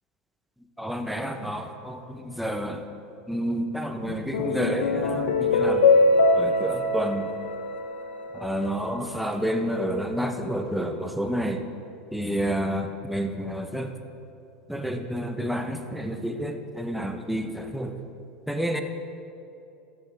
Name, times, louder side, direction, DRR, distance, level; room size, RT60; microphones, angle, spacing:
voice 1, 0.8-2.8 3.3-5.8 6.3-7.3 8.3-11.6 12.1-13.9 14.7-18.0 18.5-18.8, equal, ahead, 5 dB, 0.8 m, -29 dB
sound 1, 4.1-8.7, left 3 dB, 85° left, 0.8 m, -23 dB
13.5 x 7.0 x 3.5 m, 2.7 s
hypercardioid pair, 100°, 5 cm